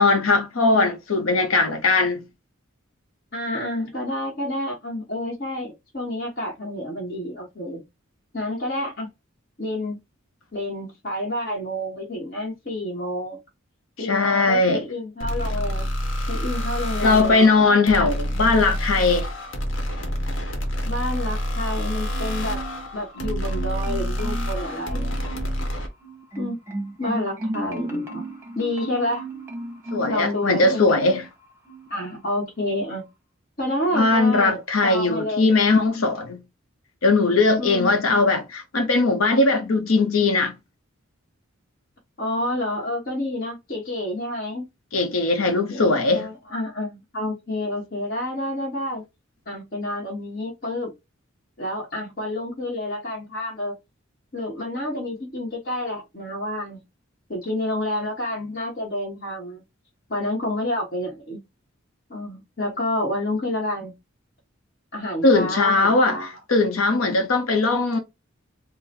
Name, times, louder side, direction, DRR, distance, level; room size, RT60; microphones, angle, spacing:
voice 1, 0.0-2.2 14.0-14.9 17.0-19.3 29.9-31.2 33.9-36.4 37.0-40.5 44.9-46.3 65.2-68.0, left 3 dB, 85° left, 0.8 m, -19 dB
voice 2, 3.3-7.8 8.3-9.1 9.6-10.0 10.5-13.4 14.0-15.9 16.3-17.8 20.8-22.6 22.9-25.2 26.4-26.6 27.0-28.2 28.5-29.3 30.1-31.0 31.9-33.0 33.6-35.5 35.9-36.0 37.6-38.2 42.2-44.6 45.7-49.0 49.5-50.9 51.6-53.8 54.3-56.8 57.3-59.6 60.1-61.4 62.1-63.9 64.9-66.3, left 1 dB, 45° left, 1.2 m, -29 dB
sound 1, 15.2-25.9, equal, 65° left, 1.1 m, -27 dB
Marimba xylophone, 22.1-22.9 23.1-24.6 24.9-25.6 26.0-30.2 30.5-31.3 31.7-31.9, right 1 dB, 10° right, 0.9 m, -34 dB
3.9 x 2.1 x 4.1 m
head